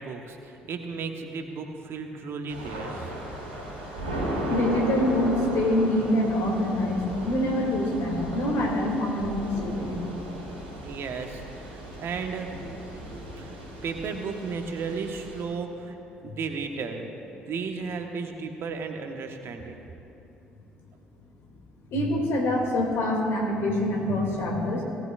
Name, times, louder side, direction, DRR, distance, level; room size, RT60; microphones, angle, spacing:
voice 1, 0.0-3.1 10.8-11.4 11.7-12.5 13.3-16.0 16.2-19.8, right 5 dB, 55° right, 4 dB, 1.2 m, -34 dB
Thunder / Rain, 2.5-15.4, right 1 dB, 85° right, 2.3 m, -35 dB
voice 2, 4.5-10.0 21.9-24.8, left 1 dB, 60° left, 0 dB, 2.5 m, -25 dB
18.5 x 15.0 x 2.5 m, 2.8 s
hypercardioid pair, 50°, 5 cm